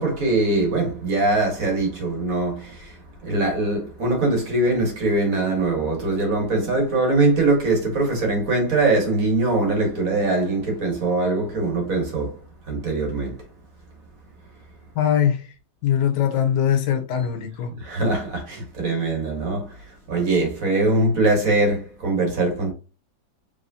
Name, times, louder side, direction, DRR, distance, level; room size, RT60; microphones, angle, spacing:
voice 1, 0.0-12.4 12.6-13.4 17.7-22.7, right 2 dB, 50° right, 1.7 m, -22 dB
voice 2, 14.9-15.5 15.8-17.7, left 9 dB, 70° left, 1.3 m, -21 dB
4.8 x 3.3 x 2.7 m
omnidirectional pair, 2.0 m